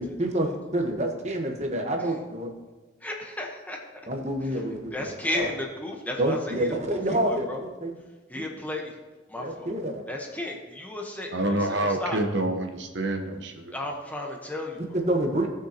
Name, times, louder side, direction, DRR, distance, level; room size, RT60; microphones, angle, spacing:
voice 1, 0.2-2.5 4.1-5.5 6.2-7.9 9.4-10.0 14.9-15.5, right 1 dB, 35° right, 3 dB, 1.1 m, -28 dB
voice 2, 3.0-3.8 4.4-4.6 4.9-7.6 8.3-9.0 9.3-9.7 10.1-12.2 13.7-14.8, left 1 dB, 10° left, 0 dB, 1.0 m, -34 dB
voice 3, 11.3-13.7, right 1 dB, 65° right, 4 dB, 1.0 m, -27 dB
17.0 x 6.3 x 2.9 m, 1.2 s
head